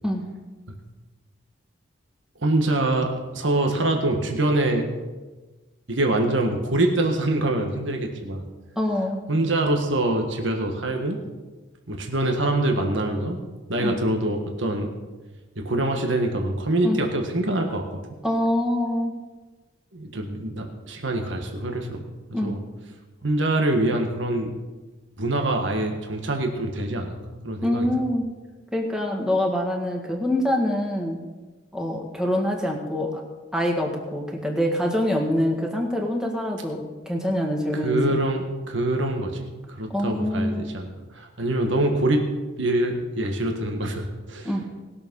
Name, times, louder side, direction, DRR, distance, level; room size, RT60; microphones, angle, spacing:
voice 1, 2.4-4.9 5.9-8.4 9.3-11.2 11.9-13.4 13.7-14.9 15.5-18.0 19.9-22.0 22.3-22.6 23.2-24.5 25.2-27.9 37.7-42.2 42.6-44.5, right 1 dB, 70° right, 3 dB, 1.6 m, -25 dB
voice 2, 8.8-9.2 13.8-13.9 16.8-17.0 18.2-19.1 22.3-22.6 27.6-28.2 28.7-31.2 31.7-33.2 33.5-38.0 39.9-40.6 44.5-44.6, left 1 dB, 5° right, 0 dB, 1.8 m, -25 dB
19.5 x 7.0 x 5.5 m, 1.2 s
head